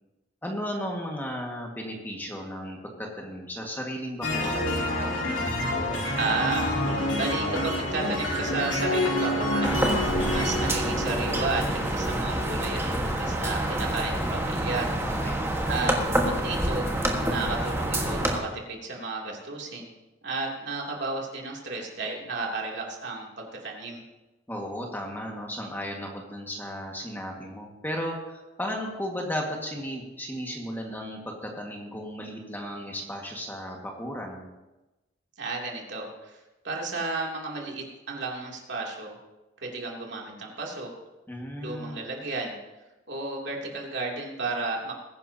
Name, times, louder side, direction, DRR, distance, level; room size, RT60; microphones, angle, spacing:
voice 1, 0.4-4.8 15.0-15.5 24.5-34.5 41.3-42.0, equal, 10° left, 0 dB, 1.7 m, -35 dB
sound 1, 4.2-12.7, left 1 dB, 80° left, 2.8 m, -28 dB
voice 2, 6.2-9.8 10.3-14.9 15.7-16.9 17.3-19.9 20.2-24.0 35.4-39.2 39.6-40.9 41.6-42.6 43.1-44.9, right 3 dB, 65° right, -2 dB, 2.8 m, -33 dB
sound 2, 9.6-18.4, right 1 dB, 15° right, 1.4 m, -27 dB
20.5 x 10.5 x 2.8 m, 1.1 s
head